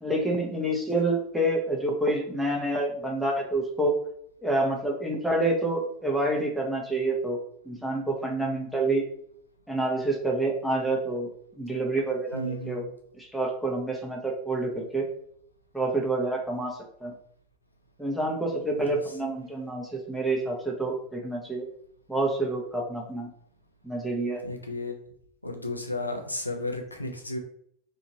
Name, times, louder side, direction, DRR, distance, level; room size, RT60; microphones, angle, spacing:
voice 1, 0.0-4.0 4.4-7.4 7.7-9.0 9.7-11.3 11.6-12.9 13.2-15.1 15.7-17.1 18.0-21.6 22.1-23.3 23.8-24.4, right 2 dB, ahead, -1 dB, 0.8 m, -28 dB
voice 2, 12.3-12.9 18.8-19.0 24.4-24.9 25.4-27.4, left 1 dB, 85° left, 3 dB, 0.5 m, -33 dB
2.7 x 2.6 x 2.9 m, 0.65 s
figure-of-eight pair, 85°, 0 cm